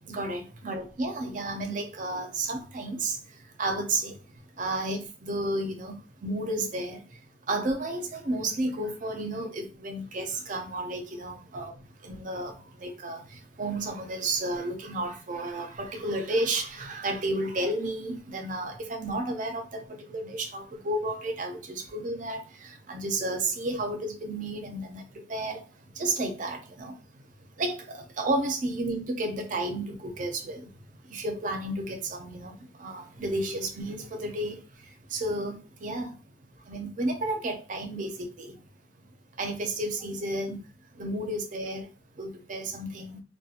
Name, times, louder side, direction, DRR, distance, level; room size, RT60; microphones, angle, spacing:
voice 1, 0.1-3.2 3.6-4.2 4.6-5.9 6.2-7.0 7.5-11.7 12.0-13.2 13.6-25.6 26.0-26.9 27.6-30.7 31.1-34.6 35.1-36.1 36.7-38.5 39.4-40.6 41.0-41.9 42.2-43.2, right 2 dB, 45° right, 0.5 m, -32 dB
2.7 x 2.2 x 2.4 m
head